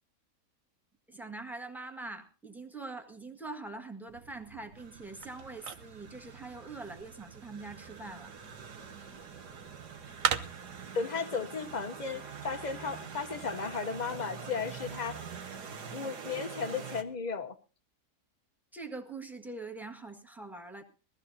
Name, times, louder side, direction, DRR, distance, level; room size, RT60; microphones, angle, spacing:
voice 1, 1.1-8.3 18.7-20.8, right 3 dB, ahead, 3 dB, 1.5 m, -43 dB
sound 1, 4.1-10.9, right 8 dB, 60° right, 1.2 m, -40 dB
sound 2, 4.8-17.0, right 6 dB, 75° right, 2.0 m, -45 dB
voice 2, 10.9-15.2 15.9-17.5, left 5 dB, 35° left, 10 dB, 0.8 m, -35 dB
21.5 x 15.0 x 2.7 m, 0.34 s
omnidirectional pair, 1.8 m